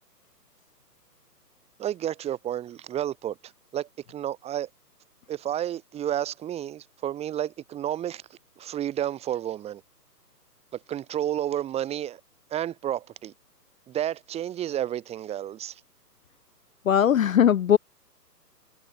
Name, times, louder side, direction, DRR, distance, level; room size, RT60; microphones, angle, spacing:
voice 1, 1.8-3.4 3.7-4.7 5.3-8.2 8.6-9.8 10.7-12.2 12.5-13.3 13.9-15.8, right 11 dB, 10° right, 4.1 m, -31 dB
voice 2, 16.9-17.8, left 9 dB, 55° left, 0.7 m, -19 dB
hypercardioid pair, 150°, 49 cm